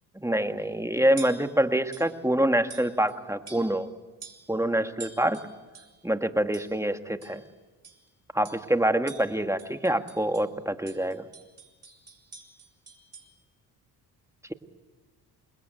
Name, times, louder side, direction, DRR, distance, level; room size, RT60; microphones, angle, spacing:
voice 1, 0.2-3.9 4.5-5.4 6.0-7.4 8.3-11.3, right 1 dB, 5° right, 7 dB, 1.8 m, -26 dB
sound 1, 0.6-0.8 1.2-1.5 1.9-2.2 2.7-3.2 3.5-3.9 4.2-4.5 5.0-6.0 6.5-6.8 7.2-7.5 7.8-8.1 8.4-8.7 9.1-10.5 10.9-13.3, right 5 dB, 35° right, 5.9 m, -47 dB
28.5 x 20.5 x 9.1 m, 1.2 s
supercardioid pair, 60°, 43 cm